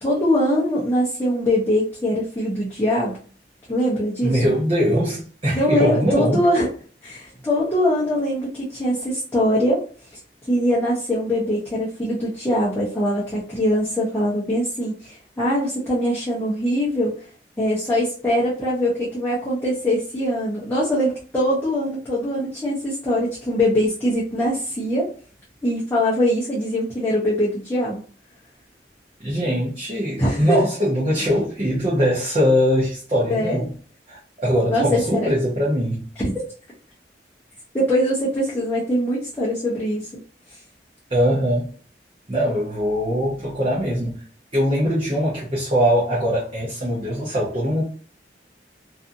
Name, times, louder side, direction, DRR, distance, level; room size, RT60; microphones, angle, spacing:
voice 1, 0.0-3.2 3.7-4.4 5.5-6.7 7.0-9.8 10.5-17.1 17.6-25.1 25.6-28.0 30.2-30.6 33.3-33.6 34.7-35.3 36.2-36.3 37.7-40.1, equal, 15° left, -9 dB, 0.7 m, -22 dB
voice 2, 4.2-6.4 29.2-33.7 34.1-36.1 41.1-41.7 42.3-44.2 44.5-47.8, equal, 30° right, -7 dB, 0.7 m, -21 dB
2.6 x 2.4 x 2.6 m, 0.40 s
head